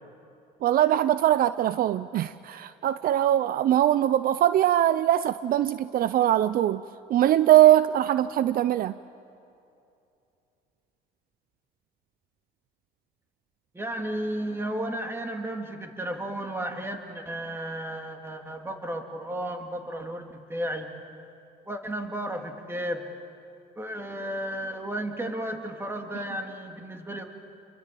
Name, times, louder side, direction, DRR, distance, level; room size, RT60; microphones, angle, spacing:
voice 1, 0.6-6.8 7.1-8.9, right 12 dB, 60° right, 14 dB, 0.6 m, -22 dB
voice 2, 13.7-20.9 21.6-23.0 23.8-27.3, right 1 dB, 15° right, 3 dB, 2.8 m, -33 dB
29.5 x 24.0 x 7.7 m, 2.7 s
cardioid pair, 110°, 17 cm